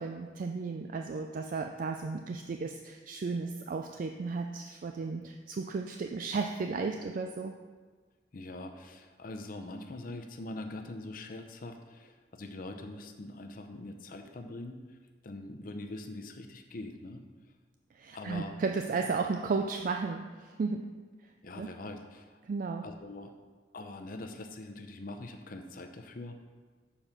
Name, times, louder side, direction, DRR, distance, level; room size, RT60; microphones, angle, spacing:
voice 1, 0.0-7.5 18.0-20.8 21.5-21.7 22.4-22.8, right 4 dB, 50° right, 4 dB, 0.3 m, -34 dB
voice 2, 8.3-15.0 15.2-17.3 18.1-18.6 21.4-22.4 22.8-23.3 23.7-26.4, left 2 dB, 50° left, 5 dB, 0.6 m, -43 dB
6.9 x 4.2 x 5.8 m, 1.4 s
head